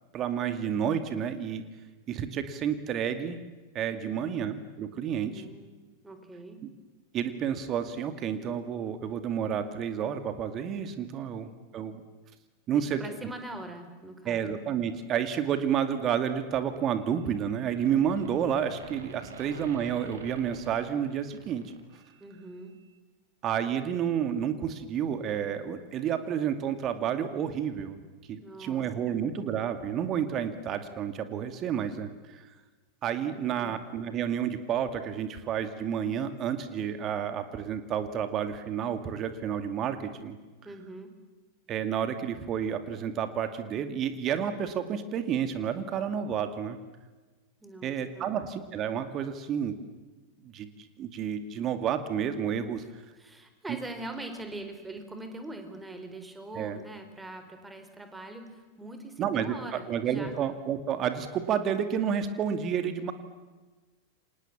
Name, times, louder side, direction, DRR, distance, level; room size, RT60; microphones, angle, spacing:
voice 1, 0.1-1.6 2.1-3.4 3.7-5.4 7.1-12.0 12.7-13.0 14.3-21.6 23.4-28.0 28.3-32.5 33.0-40.4 41.7-46.8 47.8-49.8 50.5-50.7 51.0-52.8 56.5-56.8 59.2-63.1, right 8 dB, 30° right, 9 dB, 2.3 m, -30 dB
voice 2, 4.0-4.4 5.3-6.6 12.7-14.4 19.3-19.4 22.2-22.8 28.4-29.2 33.3-33.8 40.6-41.1 47.6-48.4 53.1-60.4, right 2 dB, 10° right, 7 dB, 4.5 m, -43 dB
sound 1, 16.8-17.5 17.8-22.2, right 3 dB, 65° right, 4.4 m, -47 dB
29.5 x 26.5 x 7.4 m, 1.3 s
figure-of-eight pair, 90°, 0 cm